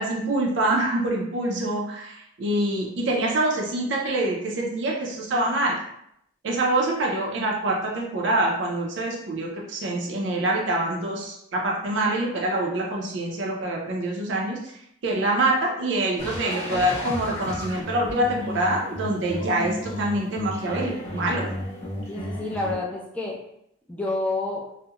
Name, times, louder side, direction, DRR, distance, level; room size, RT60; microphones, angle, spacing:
voice 1, 0.0-5.8 6.4-14.6 15.0-21.5, right 1 dB, 65° right, -1 dB, 0.4 m, -25 dB
sound 1, 16.2-22.7, left 1 dB, 35° left, 0.7 m, -33 dB
voice 2, 22.1-23.3 23.9-24.6, left 2 dB, 5° left, -3 dB, 0.4 m, -28 dB
2.3 x 2.0 x 2.8 m, 0.75 s
head